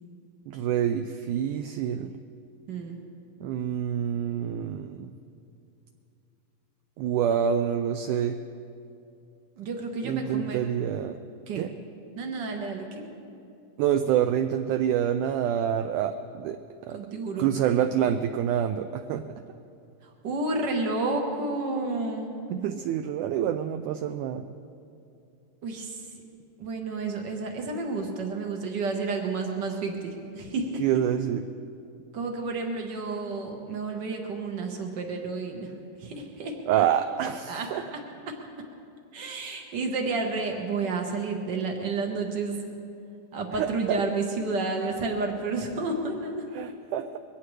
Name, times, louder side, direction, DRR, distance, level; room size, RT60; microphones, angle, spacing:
voice 1, 0.5-2.1 3.4-5.1 7.0-8.4 10.0-11.2 11.6-11.7 13.8-16.6 16.9-17.0 17.4-19.3 22.5-24.5 30.8-31.4 36.7-37.9 43.5-44.0 46.5-47.2, right 9 dB, 80° right, 8 dB, 1.8 m, -27 dB
voice 2, 2.7-3.1 9.6-10.6 11.5-11.7 12.2-13.0 16.9-17.5 20.2-22.3 25.6-26.0 26.6-30.8 32.1-35.7 36.0-36.8 37.5-38.4 39.1-42.6 43.3-46.5, right 3 dB, 65° right, 2 dB, 1.0 m, -31 dB
22.0 x 17.0 x 3.3 m, 2.6 s
omnidirectional pair, 4.0 m